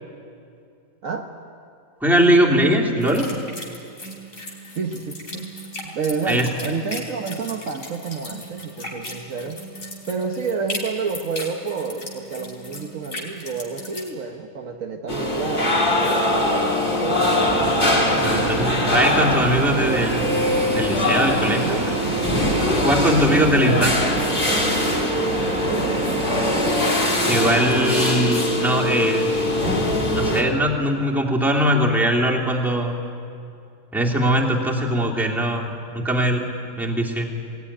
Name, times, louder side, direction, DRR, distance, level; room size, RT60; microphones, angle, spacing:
voice 1, 2.0-3.3 6.3-6.5 18.2-20.2 20.7-22.1 22.8-24.1 27.3-29.3 30.1-33.0 33.9-36.5 36.8-37.3, equal, ahead, -2 dB, 2.6 m, -21 dB
sound 1, 3.0-14.1, left 1 dB, 65° left, 4.0 m, -37 dB
voice 2, 4.7-5.5 5.8-9.6 10.1-15.8 16.3-17.7 19.8-20.0 21.6-21.8 23.3-23.9 25.7-26.0, right 5 dB, 65° right, 3 dB, 1.5 m, -29 dB
sound 2, 15.1-30.4, left 1 dB, 35° left, 2.6 m, -22 dB
sound 3, 17.4-26.7, right 4 dB, 85° right, 1.9 m, -28 dB
19.0 x 18.0 x 10.0 m, 2.5 s
omnidirectional pair, 1.5 m